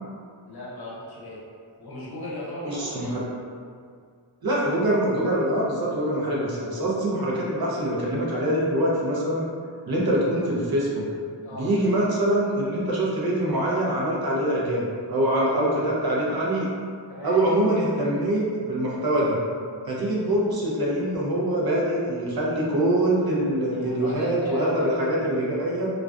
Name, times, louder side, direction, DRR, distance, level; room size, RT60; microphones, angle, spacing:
voice 1, 0.5-1.4 1.8-3.2 11.4-11.7 15.3-15.8 17.1-17.4 23.7-25.0, left 1 dB, 55° left, -6 dB, 0.8 m, -37 dB
voice 2, 2.6-3.3 4.4-9.4 9.9-11.1 11.5-16.7 17.2-19.4 19.9-25.9, right 1 dB, 50° right, -5 dB, 0.7 m, -24 dB
2.4 x 2.2 x 2.4 m, 2.1 s
wide cardioid pair, 70°, 46 cm